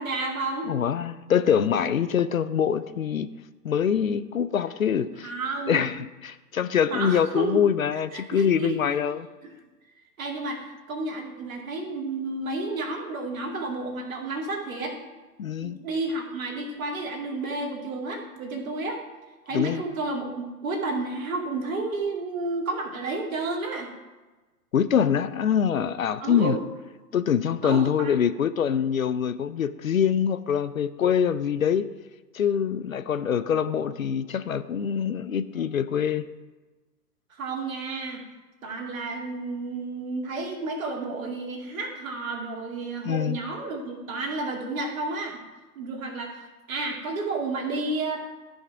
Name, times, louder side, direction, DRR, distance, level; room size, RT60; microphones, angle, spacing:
voice 1, 0.0-0.7 5.2-5.8 6.9-7.6 8.1-8.8 9.4-9.5 10.2-14.9 15.6-19.0 19.5-23.9 26.2-26.6 27.6-28.2 37.3-38.2 38.6-45.4 45.8-46.4 46.7-48.2, right 3 dB, 55° right, 1 dB, 2.3 m, -31 dB
voice 2, 0.6-3.3 3.6-5.3 5.7-9.3 15.4-15.8 19.5-19.8 24.7-26.6 27.1-31.9 32.3-36.3 43.0-43.4, left 8 dB, 55° left, 13 dB, 0.6 m, -24 dB
13.5 x 5.4 x 4.8 m, 1.2 s
figure-of-eight pair, 115°, 50 cm